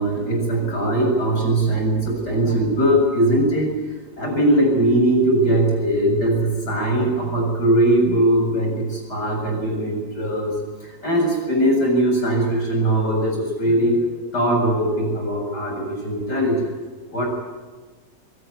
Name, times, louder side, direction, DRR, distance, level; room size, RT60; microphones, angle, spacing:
voice 1, 0.0-3.8 4.2-10.5 10.8-16.7 17.1-17.3, right 1 dB, 90° left, 1 dB, 7.9 m, -20 dB
23.0 x 17.5 x 9.8 m, 1.4 s
omnidirectional pair, 1.7 m